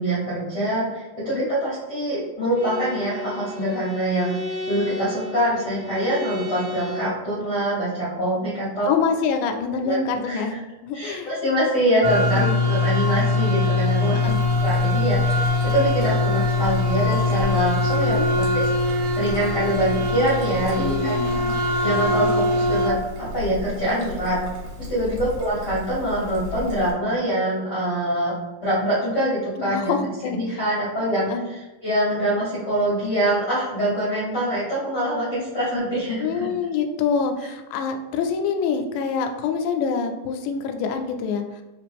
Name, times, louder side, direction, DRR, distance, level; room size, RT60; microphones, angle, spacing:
voice 1, 0.0-8.9 9.8-10.0 10.2-10.6 10.9-14.2 14.6-21.2 21.8-24.4 24.9-29.9 30.2-36.4, right 1 dB, 65° left, -8 dB, 1.0 m, -24 dB
Bowed string instrument, 2.5-7.2, left 2 dB, 45° right, 2.0 m, -34 dB
voice 2, 8.9-11.4 12.2-12.6 14.2-14.4 18.1-18.3 20.8-21.5 25.0-25.2 29.6-30.6 31.2-31.5 36.2-41.6, left 5 dB, 80° left, 5 dB, 1.8 m, -26 dB
sound 1, 12.0-22.9, left 2 dB, 80° right, 2.1 m, -22 dB
Trickle dribble, 14.2-26.9, left 1 dB, 65° right, 2.0 m, -36 dB
5.0 x 3.0 x 3.4 m, 1.1 s
omnidirectional pair, 3.9 m